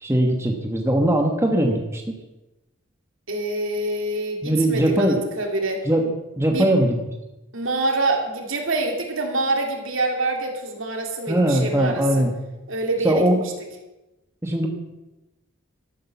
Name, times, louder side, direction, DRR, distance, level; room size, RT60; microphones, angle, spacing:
voice 1, 0.0-2.0 4.4-5.2 5.8-6.1 6.4-7.0 11.3-12.3 13.0-13.4 14.4-14.7, right 1 dB, 10° right, 2 dB, 1.3 m, -20 dB
voice 2, 3.3-5.9 6.5-6.7 7.5-12.2 12.7-13.5, right 2 dB, 65° right, 2 dB, 2.9 m, -26 dB
13.0 x 11.5 x 7.0 m, 1.0 s
head